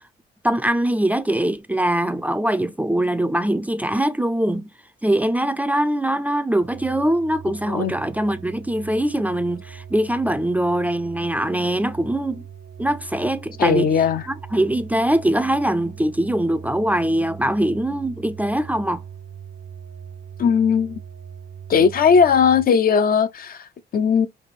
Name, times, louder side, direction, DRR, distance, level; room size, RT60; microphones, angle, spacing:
voice 1, 0.4-4.7 5.0-12.4 12.8-13.9 14.3-19.0, right 1 dB, 10° right, 0.4 m, -22 dB
sound 1, 6.6-22.7, right 7 dB, 60° right, 0.6 m, -40 dB
voice 2, 13.6-14.2 20.4-21.0 21.7-24.3, left 6 dB, 50° left, 0.5 m, -18 dB
3.4 x 2.6 x 4.0 m
cardioid pair, 90°, 20 cm